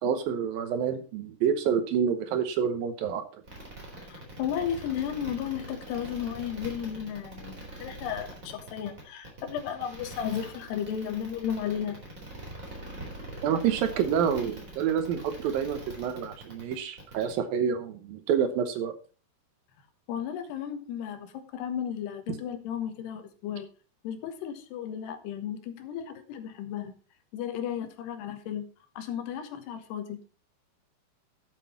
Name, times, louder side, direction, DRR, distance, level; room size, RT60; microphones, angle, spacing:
voice 1, 0.0-3.2 13.4-18.9, right 8 dB, 70° right, 9 dB, 2.6 m, -28 dB
sound 1, 3.4-17.3, right 1 dB, 20° right, 3.6 m, -43 dB
voice 2, 4.1-12.0 20.1-23.7 24.0-26.9 27.3-28.7 29.0-30.2, left 9 dB, 85° left, 8 dB, 3.4 m, -34 dB
11.5 x 7.5 x 4.3 m, 0.36 s
omnidirectional pair, 4.7 m